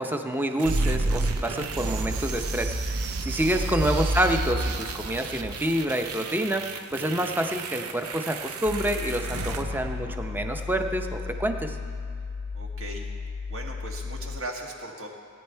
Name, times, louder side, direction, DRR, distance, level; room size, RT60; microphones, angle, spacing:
voice 1, 0.0-11.8, right 1 dB, 10° right, 5 dB, 0.6 m, -28 dB
sound 1, 0.6-10.6, right 2 dB, 90° right, 0.7 m, -30 dB
voice 2, 3.5-3.9 9.4-9.6 12.5-13.1 13.5-15.1, right 2 dB, 65° right, 1 dB, 1.6 m, -38 dB
sound 2, 8.6-14.4, left 4 dB, 60° left, 0.4 m, -35 dB
17.0 x 9.7 x 4.5 m, 2.3 s
head